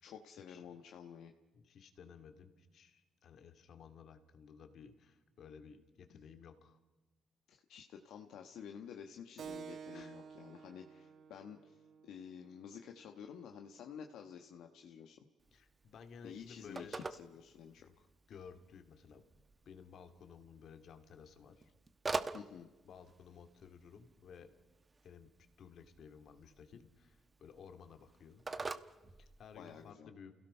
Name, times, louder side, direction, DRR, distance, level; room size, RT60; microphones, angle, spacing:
voice 1, 0.0-1.3 7.5-15.2 16.2-17.9 22.3-22.7 29.5-30.1, left 7 dB, 80° left, 4 dB, 1.3 m, -51 dB
voice 2, 1.5-6.8 9.9-10.1 15.5-17.0 17.8-17.9 18.3-19.2 19.7-21.7 22.8-24.5 25.0-25.3 25.6-28.5 29.2-30.4, left 6 dB, 65° left, 7 dB, 2.4 m, -56 dB
Keyboard (musical), 9.4-14.5, right 6 dB, 60° right, 1.0 m, -53 dB
Telephone, 15.4-29.9, right 3 dB, 30° right, 1.1 m, -47 dB
29.5 x 17.0 x 5.6 m, 1.1 s
cardioid pair, 90°, 0 cm